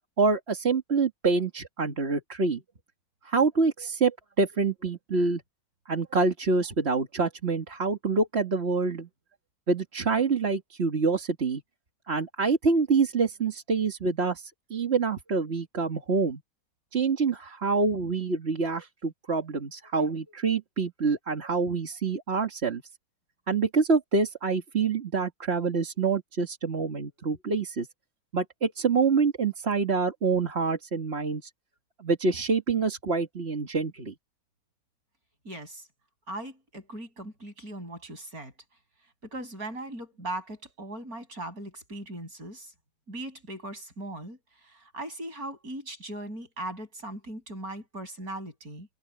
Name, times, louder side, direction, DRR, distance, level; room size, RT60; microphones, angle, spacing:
voice 1, 0.2-2.6 3.2-5.4 5.9-9.1 9.7-11.6 12.1-16.4 16.9-22.8 23.5-27.9 28.3-31.5 32.0-34.1, right 4 dB, 45° right, 2.1 m, -26 dB
voice 2, 35.4-35.8 36.3-38.5 39.2-42.7 43.1-48.9, right 1 dB, 85° right, 8.7 m, -39 dB
omnidirectional pair, 1.5 m